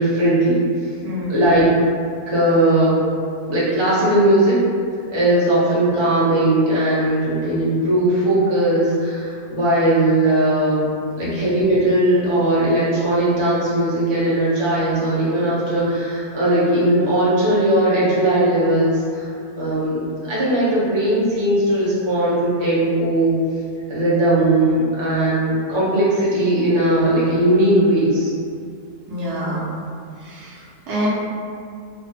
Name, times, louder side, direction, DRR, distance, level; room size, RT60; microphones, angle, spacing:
voice 1, 0.0-0.9 1.3-1.7 2.3-3.0 3.5-4.6 5.1-10.9 11.1-19.3 19.6-23.4 23.9-28.3, right 1 dB, 35° right, -9 dB, 0.4 m, -18 dB
voice 2, 1.0-1.5 11.2-11.5 29.1-29.7 30.2-31.1, equal, 75° right, -7 dB, 1.3 m, -27 dB
3.3 x 2.0 x 2.7 m, 2.3 s
omnidirectional pair, 1.7 m